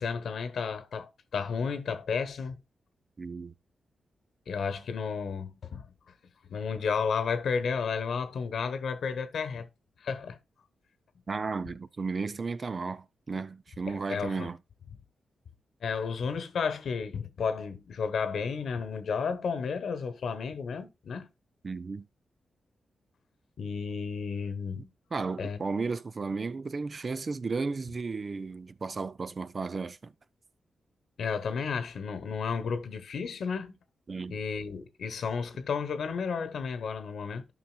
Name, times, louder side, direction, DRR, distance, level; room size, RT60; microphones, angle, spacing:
voice 1, 0.0-2.6 4.5-5.9 6.5-9.7 10.0-10.4 13.9-14.5 15.8-21.3 23.6-24.9 25.4-25.6 31.2-33.8 34.3-37.4, left 5 dB, 75° left, 1.1 m, -32 dB
voice 2, 3.2-3.5 11.3-14.6 21.6-22.1 24.8-24.9 25.1-30.1 34.1-34.4, right 4 dB, 45° right, 0.5 m, -34 dB
13.5 x 5.6 x 2.3 m
cardioid pair, 75°, 0 cm